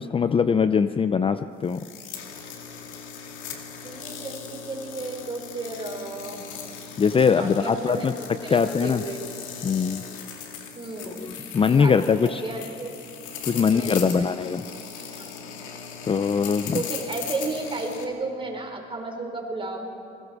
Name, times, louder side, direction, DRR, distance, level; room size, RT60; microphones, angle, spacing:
voice 1, 0.0-1.8 7.0-8.1 8.5-9.0 9.6-10.0 11.5-12.4 13.4-14.6 16.0-16.8, left 6 dB, 30° left, 11 dB, 0.6 m, -21 dB
sound 1, 1.6-18.0, left 7 dB, 90° left, 2.3 m, -39 dB
voice 2, 3.8-6.4 7.4-9.2 10.7-11.3 11.8-12.9 13.5-14.3 15.2-15.5 16.2-16.3 16.7-19.8, right 2 dB, 25° right, 2 dB, 4.4 m, -33 dB
28.5 x 21.0 x 4.9 m, 2.5 s
cardioid pair, 95°, 19 cm